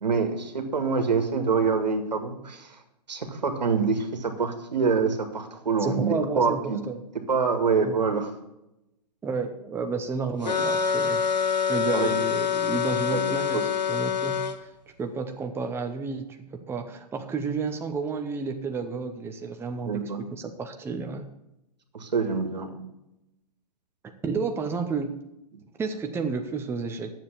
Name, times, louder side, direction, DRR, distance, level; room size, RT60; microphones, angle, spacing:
voice 1, 0.0-2.8 3.1-6.8 7.3-8.3 11.9-12.1 13.1-13.6 19.8-20.3 21.9-22.8, right 5 dB, 80° right, 6 dB, 2.0 m, -26 dB
voice 2, 5.8-7.0 7.8-8.0 9.2-11.2 11.7-14.7 15.0-21.3 24.2-25.1 25.8-27.1, right 4 dB, 10° right, 5 dB, 0.8 m, -31 dB
sound 1, 10.4-14.6, left 7 dB, 90° left, 1.2 m, -26 dB
9.5 x 7.2 x 7.0 m, 0.88 s
hypercardioid pair, 120°, 21 cm